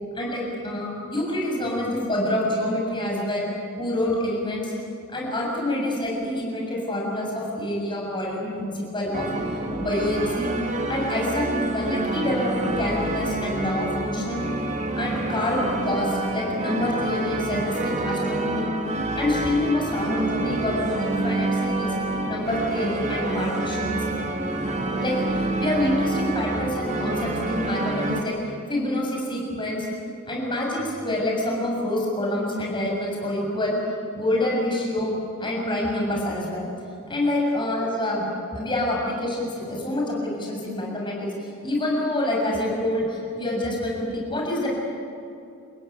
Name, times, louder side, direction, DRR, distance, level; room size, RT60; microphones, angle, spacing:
voice 1, 0.1-3.5 3.8-4.7 5.1-9.3 9.8-10.5 10.9-14.4 14.9-18.7 19.2-21.9 22.3-24.0 25.0-28.3 28.7-29.9 30.3-33.8 34.1-35.1 35.4-36.7 37.1-38.3 38.5-44.7, left 1 dB, 25° left, -2 dB, 6.9 m, -26 dB
sound 1, 9.1-28.2, right 2 dB, 35° right, 2.1 m, -28 dB
30.0 x 17.0 x 9.4 m, 2.6 s
head